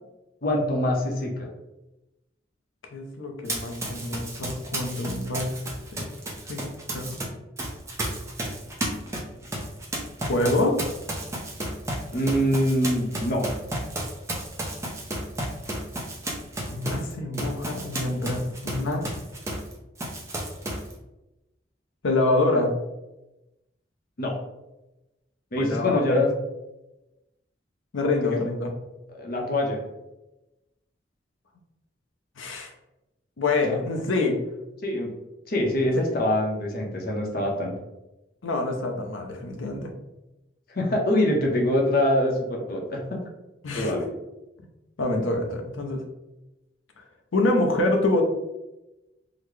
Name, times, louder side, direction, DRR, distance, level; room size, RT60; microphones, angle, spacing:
voice 1, 0.4-1.5 12.1-13.5 24.2-24.4 25.5-26.3 28.2-28.4 29.1-29.8 33.7-33.8 34.8-35.1 35.5-37.7 40.7-43.0 43.8-44.0, left 1 dB, 50° left, 0 dB, 0.7 m, -24 dB
voice 2, 2.9-5.5 6.0-6.1 6.5-7.2 10.2-10.8 16.7-19.0 22.0-22.7 25.6-26.3 27.9-28.7 32.4-32.7 33.4-34.4 35.9-36.0 38.4-39.9 43.6-44.0 45.0-46.0 47.3-48.2, left 2 dB, 90° left, 3 dB, 0.6 m, -26 dB
Run, 3.5-7.2 7.6-19.7 20.0-20.9, right 1 dB, 15° right, 0.6 m, -33 dB
3.8 x 2.1 x 3.1 m, 0.97 s
head